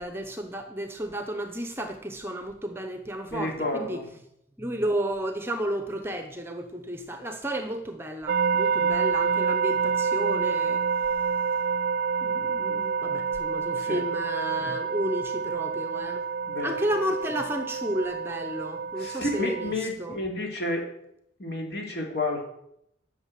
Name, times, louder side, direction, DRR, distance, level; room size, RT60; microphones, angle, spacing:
voice 1, 0.0-4.0 4.6-10.8 12.2-16.2 16.6-20.2, right 1 dB, 10° right, 6 dB, 0.9 m, -32 dB
voice 2, 3.3-4.0 13.8-14.0 16.5-16.7 19.0-20.8 21.4-22.4, left 2 dB, 55° left, 0 dB, 2.9 m, -30 dB
sound 1, 8.3-19.7, right 5 dB, 50° right, 0.3 m, -28 dB
11.5 x 6.5 x 7.6 m, 0.76 s
head